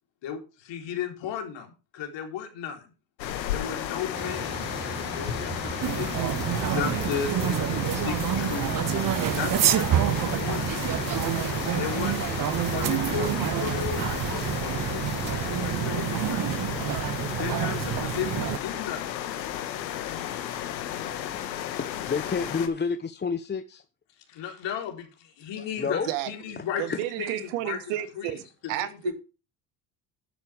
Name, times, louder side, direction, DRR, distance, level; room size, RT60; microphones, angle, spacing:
voice 1, 0.2-2.9 3.5-4.7 5.2-6.1 6.6-9.0 9.3-10.9 11.8-12.3 12.6-15.1 15.5-16.7 17.4-19.3 24.3-26.9 27.2-28.3 28.8-29.1, left 7 dB, 60° left, 3.8 m, -35 dB
sound 1, 3.2-22.7, left 11 dB, 85° left, 1.6 m, -33 dB
sound 2, 4.1-15.8, right 5 dB, 20° right, 1.1 m, -37 dB
sound 3, 5.8-18.6, right 12 dB, 40° right, 0.8 m, -28 dB
voice 2, 20.8-21.4 21.8-23.8 25.6-26.1 26.9-27.0, left 5 dB, 20° left, 0.8 m, -31 dB
voice 3, 26.0-29.1, right 14 dB, 70° right, 1.6 m, -32 dB
11.5 x 10.5 x 3.4 m
hypercardioid pair, 60°, 50 cm